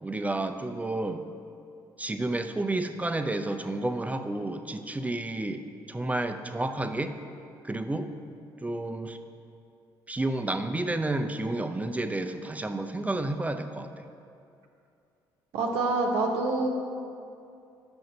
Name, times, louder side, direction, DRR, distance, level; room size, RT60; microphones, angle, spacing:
voice 1, 0.0-1.2 2.0-5.6 5.9-7.1 7.6-8.1 8.6-9.2 10.1-13.9, right 2 dB, 15° right, 8 dB, 0.5 m, -30 dB
voice 2, 15.5-16.7, right 3 dB, 75° right, 0 dB, 0.9 m, -26 dB
6.3 x 5.2 x 5.8 m, 2.5 s
hypercardioid pair, 60°, 10 cm